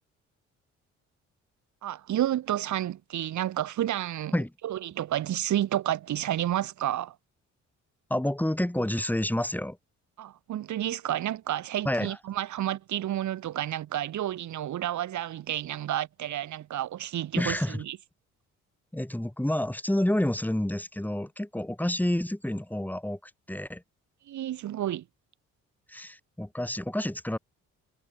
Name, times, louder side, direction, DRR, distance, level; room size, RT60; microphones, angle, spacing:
voice 1, 1.8-4.3 4.6-7.2 10.2-18.0 24.3-25.0, right 12 dB, 75° right, 2.6 m, -30 dB
voice 2, 8.1-9.8 11.8-12.2 17.3-17.8 18.9-23.8 25.9-27.4, left 1 dB, 5° left, 6.6 m, -29 dB
cardioid pair, 90°, 30 cm